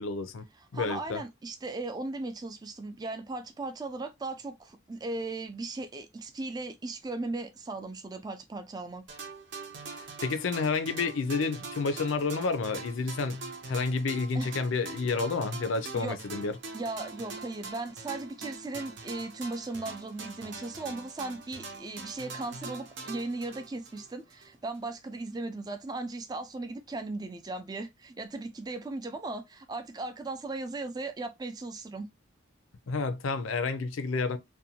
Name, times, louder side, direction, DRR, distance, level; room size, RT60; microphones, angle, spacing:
voice 1, 0.0-0.4 0.7-1.2 10.0-13.4 13.7-16.5 32.9-34.4, left 4 dB, 85° left, 0.4 m, -30 dB
voice 2, 0.6-9.0 14.3-14.5 15.9-16.2 16.7-32.1, right 2 dB, 20° right, 0.3 m, -37 dB
sound 1, 9.1-24.5, right 3 dB, 65° right, 0.6 m, -43 dB
2.6 x 2.2 x 2.7 m
head